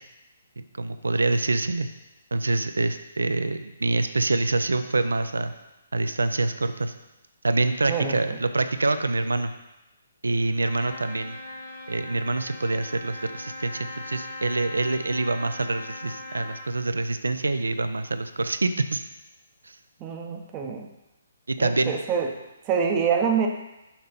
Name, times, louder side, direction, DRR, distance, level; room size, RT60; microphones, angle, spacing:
voice 1, 0.6-1.9 2.3-5.5 5.9-6.9 7.4-9.5 10.2-11.4 11.9-19.0 19.6-19.8 21.5-21.9, right 2 dB, 75° right, 10 dB, 0.5 m, -26 dB
voice 2, 7.9-8.2 20.0-20.9 21.6-22.3 22.6-23.5, right 6 dB, 25° right, 2 dB, 0.7 m, -25 dB
Trumpet, 10.6-16.7, left 1 dB, 50° left, 1.2 m, -39 dB
5.9 x 4.2 x 5.2 m, 0.94 s
figure-of-eight pair, 135°, 0 cm